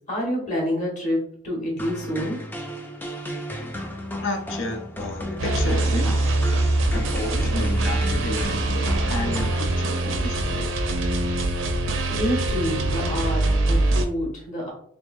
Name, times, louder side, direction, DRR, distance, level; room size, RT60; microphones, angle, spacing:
voice 1, 0.1-1.2 1.4-2.4 12.1-14.7, equal, 35° left, -4 dB, 1.3 m, -27 dB
sound 1, 1.8-10.2, equal, 10° left, 0.3 m, -34 dB
voice 2, 4.2-6.2 6.9-10.7, left 2 dB, 75° left, 5 dB, 0.6 m, -32 dB
sound 2, 5.4-14.1, right 2 dB, 80° right, 0.5 m, -23 dB
3.4 x 3.3 x 2.5 m, 0.65 s
head